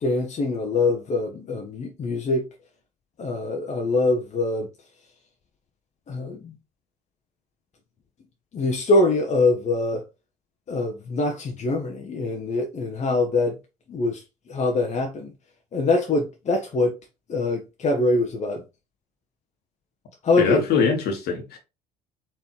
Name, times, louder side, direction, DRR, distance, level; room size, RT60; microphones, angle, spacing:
voice 1, 0.0-2.4 3.2-4.7 6.1-6.5 8.5-10.0 10.7-13.6 13.9-15.3 15.7-16.9 17.3-18.6 20.2-20.6, left 2 dB, 35° left, 0.9 m, -24 dB
voice 2, 20.4-21.6, left 5 dB, 50° left, 1.4 m, -23 dB
4.5 x 3.2 x 3.0 m
figure-of-eight pair, 55°, 20 cm